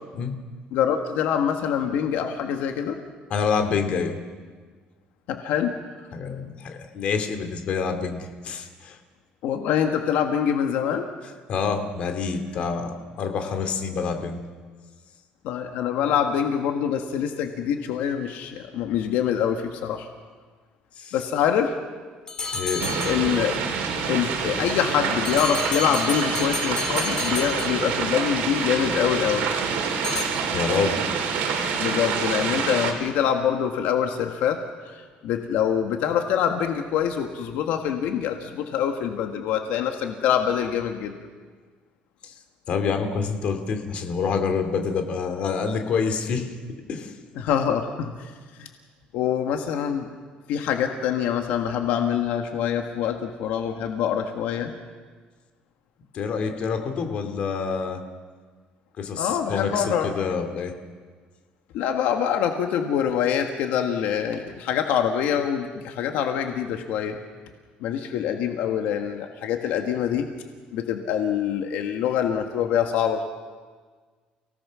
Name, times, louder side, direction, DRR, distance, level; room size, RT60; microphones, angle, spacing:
voice 1, 0.7-3.0 5.3-5.8 9.4-11.1 15.4-20.1 21.1-21.8 23.0-23.6 24.1-29.5 31.8-41.2 47.4-48.3 48.6-48.7 49.1-50.1 50.5-54.7 59.2-60.1 61.7-67.2 67.8-70.3 70.7-73.2, left 8 dB, 75° left, 4 dB, 1.7 m, -25 dB
voice 2, 3.3-4.2 6.1-9.0 11.5-14.4 21.0-21.1 22.5-22.9 30.5-31.0 42.2-42.3 42.7-46.5 46.9-47.2 56.1-58.0 59.0-60.7, left 5 dB, 45° left, 6 dB, 2.4 m, -27 dB
sound 1, 22.3-23.6 25.2-28.2 30.0-30.2, left 4 dB, 25° left, 2.8 m, -31 dB
sound 2, 22.8-32.9, right 6 dB, 70° right, 3.9 m, -27 dB
29.5 x 18.0 x 6.3 m, 1.5 s
cardioid pair, 175°, 3 cm